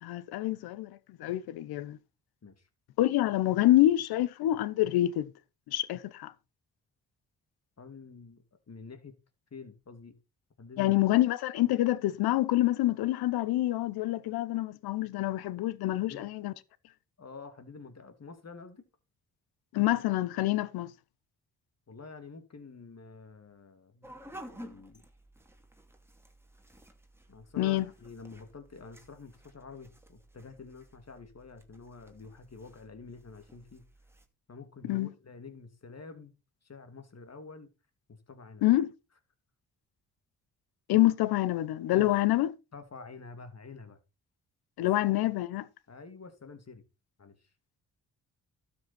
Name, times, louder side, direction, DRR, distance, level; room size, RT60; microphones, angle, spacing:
voice 1, 0.0-2.0 3.0-5.3 5.7-6.3 10.8-16.5 19.7-20.9 27.6-27.9 34.8-35.1 38.6-38.9 40.9-42.5 44.8-45.7, left 15 dB, 85° left, 0.8 m, -27 dB
voice 2, 7.8-9.1 9.5-10.1 10.6-10.9 16.0-16.3 17.2-18.8 21.9-25.1 27.3-33.8 34.5-36.4 36.6-37.7 38.3-38.7 41.9-42.1 42.7-44.0 45.1-45.2 45.9-46.8 47.2-47.4, left 4 dB, 45° left, 2.6 m, -48 dB
sound 1, 24.0-34.3, equal, 5° right, 2.5 m, -53 dB
12.5 x 6.8 x 4.3 m
supercardioid pair, 50°, 36 cm